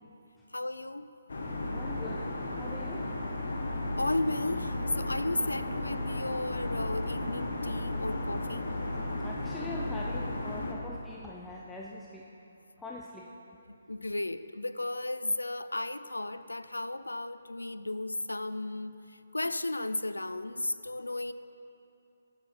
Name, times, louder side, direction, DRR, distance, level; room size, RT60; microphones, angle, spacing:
voice 1, 0.5-1.1 4.0-8.7 13.7-21.3, left 2 dB, 90° left, 13 dB, 0.4 m, -34 dB
sound 1, 1.3-10.7, left 1 dB, 65° left, 1.5 m, -34 dB
voice 2, 1.7-2.3 2.6-3.1 9.2-12.3 12.8-13.3, left 2 dB, 10° left, -3 dB, 0.6 m, -43 dB
9.7 x 8.1 x 5.8 m, 2.8 s
figure-of-eight pair, 145°, 0 cm